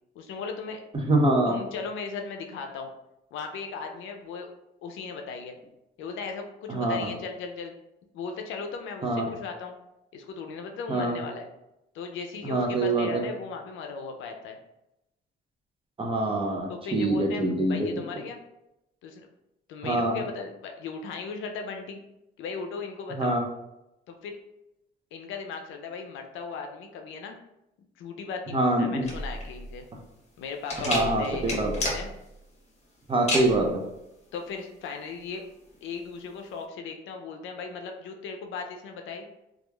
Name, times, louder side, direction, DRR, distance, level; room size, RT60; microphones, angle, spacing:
voice 1, 0.2-0.8 1.5-2.9 3.3-4.5 4.8-5.6 6.0-7.7 8.1-9.7 10.1-11.5 11.9-14.6 16.7-18.4 19.0-19.3 19.7-22.0 22.4-23.4 24.1-24.4 25.1-27.4 28.0-29.9 30.4-32.1 34.3-35.4 35.8-39.3, left 5 dB, 80° left, 4 dB, 0.4 m, -37 dB
voice 2, 1.1-1.6 6.7-6.9 9.0-9.3 10.9-11.2 12.4-13.2 16.0-17.8 19.8-20.2 23.2-23.4 28.5-29.0 30.9-31.2 31.6-31.7 33.1-33.8, right 2 dB, 25° right, 1 dB, 0.6 m, -24 dB
sound 1, 29.0-36.6, left 1 dB, 35° left, 0.9 m, -33 dB
2.9 x 2.3 x 2.2 m, 0.88 s
cardioid pair, 90°, 20 cm